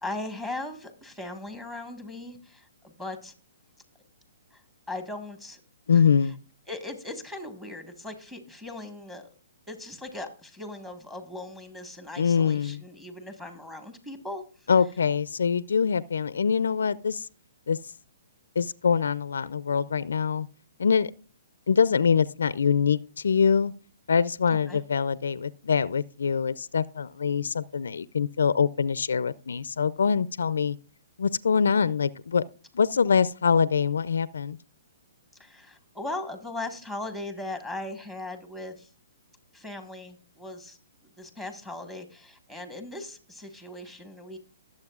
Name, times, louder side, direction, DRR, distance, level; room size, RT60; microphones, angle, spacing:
voice 1, 0.0-3.3 4.5-4.6 4.9-5.6 5.9-6.0 6.7-9.3 9.7-14.4 24.7-24.8 35.4-38.9 39.5-40.8 41.2-44.4, left 2 dB, 5° right, 1.5 m, -38 dB
voice 2, 5.9-6.4 12.2-12.8 14.7-17.3 17.7-17.8 18.6-20.5 20.8-21.1 21.7-23.7 24.1-30.8 31.2-32.4 32.7-34.6, left 6 dB, 80° left, 0.4 m, -24 dB
19.5 x 7.6 x 2.4 m
hypercardioid pair, 145°, 0 cm